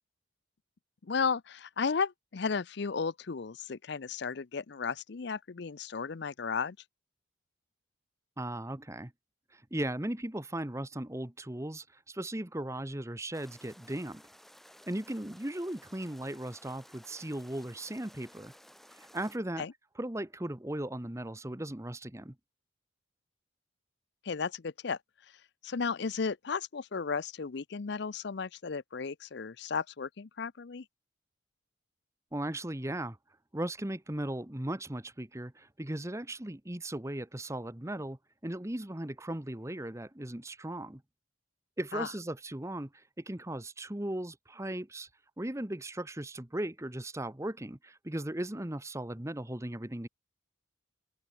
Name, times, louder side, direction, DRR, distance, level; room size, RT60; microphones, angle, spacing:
voice 1, 1.0-6.8 19.6-19.7 24.2-25.0 25.6-30.8 41.9-42.1, left 5 dB, 55° left, 0.5 m, -34 dB
voice 2, 8.4-9.1 9.5-14.2 14.9-18.5 19.0-19.7 20.0-22.3 32.3-33.2 33.5-41.0 41.8-45.1 45.4-50.1, right 1 dB, 15° right, 1.0 m, -37 dB
sound 1, 13.3-19.4, equal, ahead, 6.3 m, -56 dB
open air
head